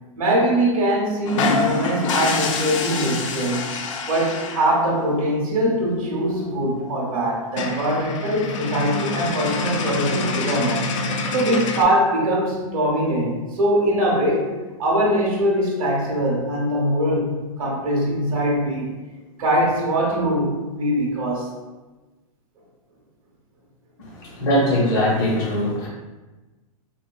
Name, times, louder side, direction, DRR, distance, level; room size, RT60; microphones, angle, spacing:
voice 1, 0.2-3.7 4.1-10.9 11.3-14.5 14.8-18.9 19.4-21.5, right 1 dB, 75° right, -3 dB, 1.0 m, -22 dB
sound 1, 1.3-4.9 6.4-6.5 6.8-6.9 7.2-7.3 7.5-11.8, left 4 dB, 60° left, 0.4 m, -26 dB
voice 2, 24.0-25.9, left 1 dB, 35° left, -3 dB, 0.7 m, -21 dB
3.6 x 2.2 x 2.3 m, 1.2 s
hypercardioid pair, 165°, 18 cm